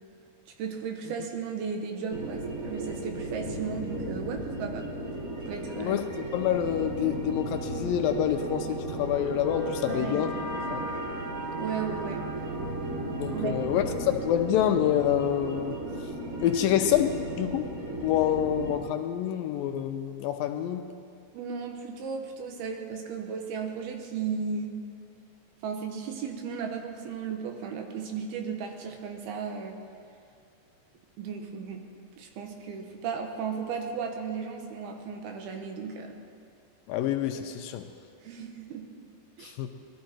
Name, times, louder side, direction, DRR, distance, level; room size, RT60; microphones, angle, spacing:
voice 1, 0.6-4.9 5.5-6.0 9.9-10.8 11.6-12.2 13.3-13.7 21.3-24.8 25.6-29.8 31.2-31.8 32.2-36.2 38.2-38.9 39.4-39.5, right 6 dB, 80° right, 4 dB, 3.2 m, -35 dB
sound 1, 2.1-18.8, right 1 dB, 45° right, 1.1 m, -35 dB
voice 2, 5.8-10.3 10.7-10.8 13.1-15.8 16.4-17.7 18.0-20.9 36.9-37.9 39.4-39.7, left 10 dB, 80° left, 6 dB, 2.3 m, -27 dB
20.5 x 13.0 x 4.4 m, 2.4 s
omnidirectional pair, 4.4 m